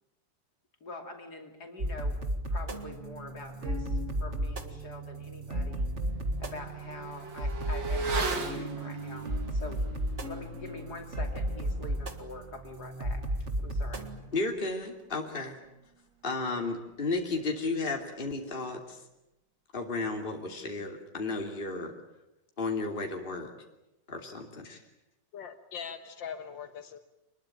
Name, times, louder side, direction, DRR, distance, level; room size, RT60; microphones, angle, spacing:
voice 1, 0.8-2.2 2.5-5.9 6.4-9.8 10.2-13.2 13.6-14.1, left 2 dB, 60° left, 3 dB, 3.2 m, -44 dB
sound 1, 1.8-14.2, right 1 dB, 40° right, 2.1 m, -34 dB
Motorcycle / Accelerating revving vroom, 5.0-5.1 5.5-15.5 15.8-15.9, right 3 dB, 80° right, 3.2 m, -40 dB
voice 2, 14.3-15.6 16.2-19.0 19.7-21.9 22.6-23.5 24.1-24.8, left 3 dB, 30° left, 2 dB, 3.0 m, -33 dB
voice 3, 25.3-27.0, left 7 dB, 85° left, 8 dB, 2.1 m, -41 dB
25.5 x 21.0 x 8.9 m, 0.90 s
omnidirectional pair, 2.0 m